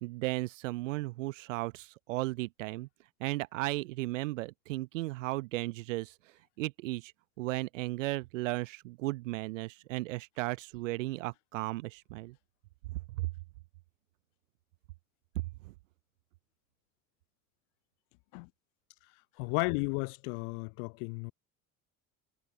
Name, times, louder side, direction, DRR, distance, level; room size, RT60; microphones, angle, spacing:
voice 1, 0.0-2.9 3.2-6.1 6.6-7.1 7.4-12.4 12.9-13.3 15.6-15.7, right 20 dB, 65° right, 0.9 m, -35 dB
voice 2, 19.4-21.3, left 40 dB or more, 55° left, 0.7 m, -33 dB
figure-of-eight pair, 60°, 41 cm